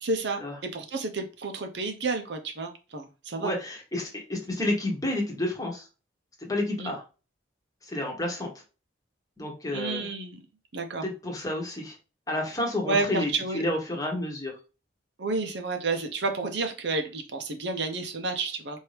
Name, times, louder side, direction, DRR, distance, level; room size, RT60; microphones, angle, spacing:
voice 1, 0.0-3.5 6.8-6.9 9.7-10.4 10.7-11.0 12.9-13.6 15.2-18.8, right 3 dB, 60° right, 5 dB, 0.7 m, -30 dB
voice 2, 3.4-5.9 6.4-7.0 7.9-8.5 9.4-10.1 11.0-12.0 12.3-14.6, left 1 dB, 20° left, 0 dB, 1.1 m, -30 dB
4.5 x 2.7 x 3.2 m, 0.32 s
head